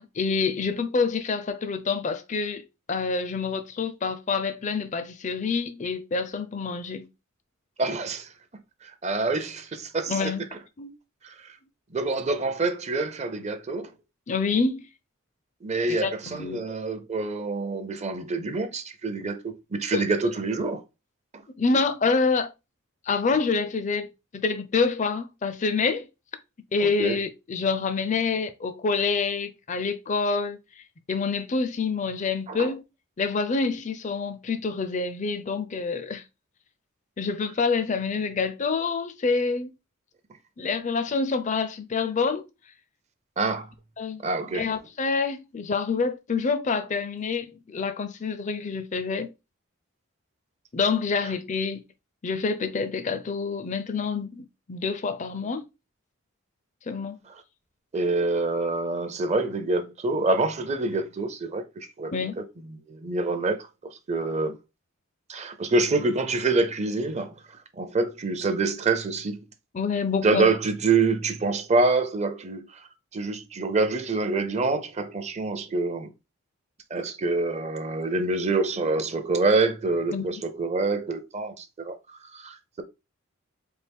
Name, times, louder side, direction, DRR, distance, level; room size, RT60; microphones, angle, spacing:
voice 1, 0.0-7.1 10.1-10.4 10.8-10.9 14.3-14.9 15.9-16.6 19.9-20.0 21.6-22.5 23.1-24.1 24.3-26.1 26.7-30.6 31.1-32.8 33.2-36.2 37.2-39.7 40.6-42.4 44.0-44.2 44.5-49.3 50.7-51.8 52.2-55.7 56.9-57.2 62.1-62.4 69.7-70.5 80.1-80.2, left 4 dB, 35° left, 0.4 m, -27 dB
voice 2, 7.8-8.3 8.8-10.3 11.2-11.6 11.9-13.9 15.6-20.8 21.3-21.4 26.8-27.2 32.5-32.7 43.4-43.7 44.2-44.7 51.2-51.3 57.9-64.6 65.3-69.4 70.2-72.9 73.1-76.1 76.9-82.8, right 3 dB, 30° right, 0.5 m, -26 dB
4.5 x 2.5 x 3.4 m
head